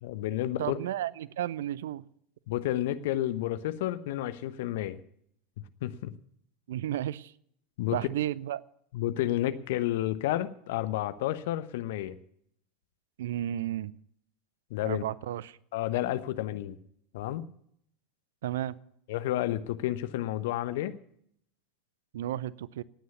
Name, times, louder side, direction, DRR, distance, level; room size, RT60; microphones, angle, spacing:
voice 1, 0.0-0.8 2.5-5.0 5.8-6.1 7.8-8.0 8.9-12.2 14.7-15.0 15.7-16.8 17.1-17.4 19.1-21.0, left 13 dB, 65° left, 13 dB, 1.0 m, -31 dB
voice 2, 0.6-2.0 6.7-7.3 7.9-8.6 13.2-13.9 14.8-15.6 18.4-18.8 22.1-22.8, right 12 dB, 70° right, 22 dB, 0.5 m, -33 dB
18.0 x 9.6 x 7.0 m, 0.69 s
figure-of-eight pair, 80°, 0 cm